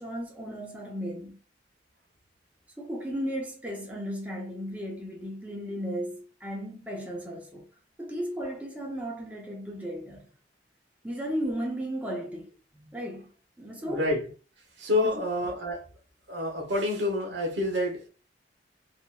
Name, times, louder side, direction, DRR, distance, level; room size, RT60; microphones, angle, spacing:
voice 1, 0.0-1.4 2.8-7.7 8.0-10.3 11.0-13.3 13.6-14.0 15.1-15.3, equal, 10° right, 0.6 m, -35 dB
voice 2, 13.7-14.3 14.8-15.9 16.3-18.1, left 1 dB, 80° right, 1.0 m, -28 dB
2.9 x 2.5 x 2.2 m
head